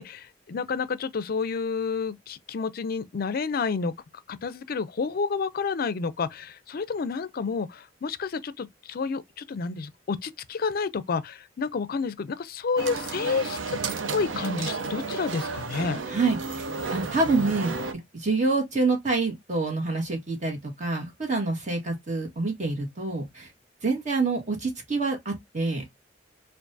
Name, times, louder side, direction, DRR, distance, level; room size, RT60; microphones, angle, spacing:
voice 1, 0.0-3.9 4.3-13.8 14.1-16.0, left 5 dB, 50° left, 0.4 m, -30 dB
sound 1, 12.8-17.9, right 4 dB, 85° right, 0.6 m, -32 dB
voice 2, 16.1-16.4 16.9-17.8 18.1-23.5 23.8-25.8, right 3 dB, 40° right, 1.5 m, -26 dB
4.6 x 2.5 x 2.6 m
head